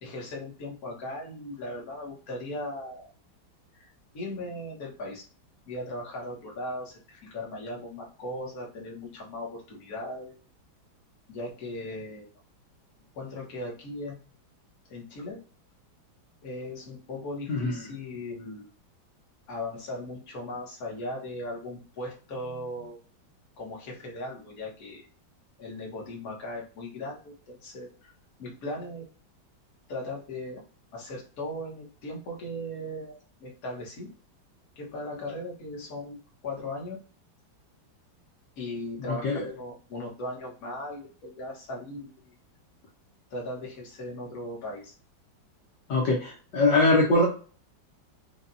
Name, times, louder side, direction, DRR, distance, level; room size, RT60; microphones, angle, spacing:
voice 1, 0.0-3.1 3.7-3.9 4.1-5.3 5.7-10.4 11.3-12.3 13.1-14.2 14.9-15.4 16.4-18.7 19.5-23.0 23.6-25.1 25.6-28.1 28.4-29.0 29.9-30.6 30.9-34.1 34.8-36.2 36.4-37.0 38.6-42.4 43.3-44.9, left 1 dB, 50° left, -2 dB, 1.7 m, -38 dB
voice 2, 17.5-17.8 39.1-39.5 45.9-47.3, left 2 dB, 65° left, -2 dB, 1.6 m, -23 dB
5.8 x 2.5 x 2.7 m, 0.39 s
omnidirectional pair, 2.2 m